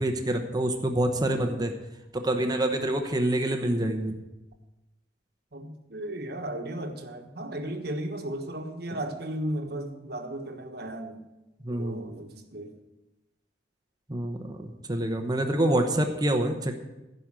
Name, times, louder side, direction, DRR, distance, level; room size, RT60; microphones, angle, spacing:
voice 1, 0.0-1.7 2.1-4.2 11.6-12.0 14.1-16.7, right 1 dB, 20° right, 5 dB, 1.0 m, -26 dB
voice 2, 5.5-11.2 11.7-12.7, right 1 dB, 60° right, 4 dB, 1.4 m, -35 dB
15.5 x 5.4 x 7.5 m, 1.0 s
head